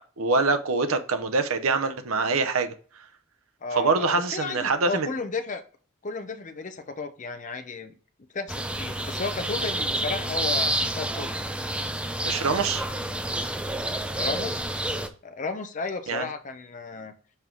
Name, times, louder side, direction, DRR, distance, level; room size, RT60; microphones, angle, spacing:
voice 1, 0.2-2.7 3.7-5.1 12.2-12.9 16.1-16.3, right 4 dB, 75° right, 0.7 m, -24 dB
voice 2, 3.6-5.6 6.0-7.9 8.3-11.3 14.1-14.7 15.2-17.1, left 4 dB, 35° left, 0.7 m, -33 dB
sound 1, 8.5-15.1, right 1 dB, 5° right, 0.5 m, -29 dB
5.6 x 4.5 x 3.8 m
head